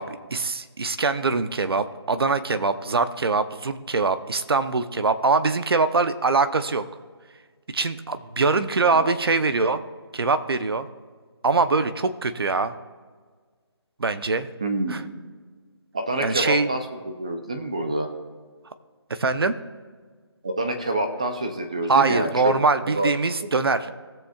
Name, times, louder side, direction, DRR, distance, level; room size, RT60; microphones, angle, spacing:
voice 1, 0.0-6.8 7.7-9.8 10.1-10.9 11.4-12.7 14.0-14.5 14.9-15.0 16.2-16.7 19.1-19.6 21.9-23.9, right 4 dB, 60° right, 10 dB, 0.8 m, -23 dB
voice 2, 14.6-15.1 15.9-18.1 20.4-22.5 23.0-23.1, right 2 dB, 15° right, 7 dB, 0.5 m, -27 dB
19.0 x 7.1 x 2.4 m, 1.5 s
figure-of-eight pair, 175°, 14 cm